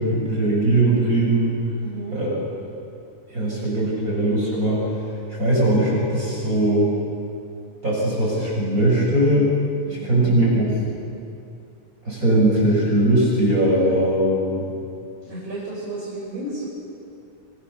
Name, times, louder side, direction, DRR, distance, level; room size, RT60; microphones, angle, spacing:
voice 1, 0.0-1.5 2.1-2.4 3.3-4.9 5.4-6.9 7.8-9.5 9.9-10.8 12.1-14.7, right 1 dB, 25° right, -4 dB, 7.7 m, -20 dB
voice 2, 1.8-2.2 9.9-10.3 15.3-16.7, right 2 dB, 55° right, -5 dB, 6.9 m, -33 dB
28.5 x 26.0 x 7.2 m, 2.6 s
omnidirectional pair, 3.3 m